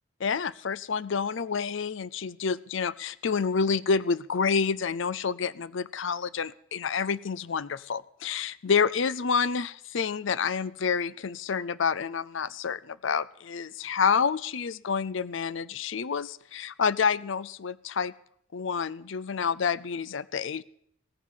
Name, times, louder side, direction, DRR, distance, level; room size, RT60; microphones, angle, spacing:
voice 1, 0.2-18.1 18.5-20.6, left 6 dB, 60° left, 19 dB, 0.5 m, -28 dB
16.5 x 14.5 x 5.6 m, 0.70 s
head